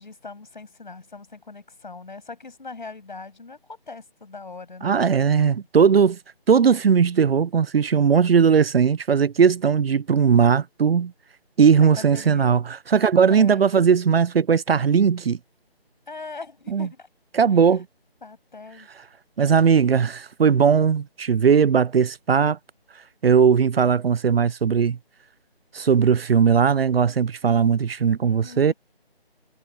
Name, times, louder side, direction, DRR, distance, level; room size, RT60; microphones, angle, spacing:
voice 1, 0.0-5.5 8.0-8.1 11.8-12.6 13.3-13.7 16.1-17.1 17.5-17.8 18.2-18.9 28.2-28.7, left 4 dB, 50° left, 7.8 m, -40 dB
voice 2, 4.8-6.2 6.5-11.1 11.6-15.4 16.7-16.9 17.3-17.9 19.4-22.6 23.2-25.0 25.7-28.7, right 6 dB, 70° right, 0.5 m, -18 dB
figure-of-eight pair, 175°, 31 cm